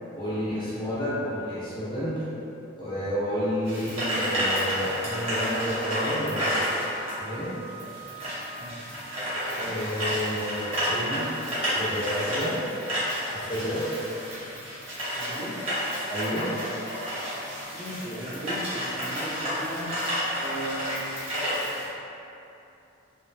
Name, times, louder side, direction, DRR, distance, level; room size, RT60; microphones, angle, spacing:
voice 1, 0.1-2.2 2.8-6.6 7.2-7.6 9.6-11.3 11.7-12.6 13.2-13.9 16.0-16.5, equal, 25° left, -11 dB, 0.7 m, -30 dB
sound 1, 3.7-21.9, equal, 30° right, 0.7 m, -30 dB
Wind instrument woodwind instrument, 5.4-9.0, right 2 dB, 60° left, 0.6 m, -45 dB
voice 2, 8.6-8.9 9.5-10.0 15.1-15.5 17.7-19.9 20.3-21.1, equal, 65° right, -11 dB, 1.0 m, -37 dB
2.9 x 2.6 x 2.2 m, 2.8 s
head